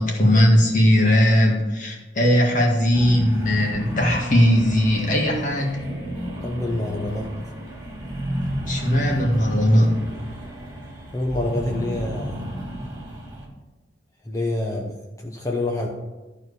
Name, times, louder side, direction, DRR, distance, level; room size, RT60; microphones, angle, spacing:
voice 1, 0.0-5.8 8.7-9.9, equal, 45° left, -1 dB, 1.9 m, -18 dB
sound 1, 2.9-13.5, equal, 20° right, 2.4 m, -32 dB
voice 2, 6.4-7.3 11.1-12.4 14.2-15.0 15.2-15.9, left 2 dB, 20° left, 0 dB, 0.9 m, -26 dB
12.0 x 4.7 x 6.8 m, 1.2 s
head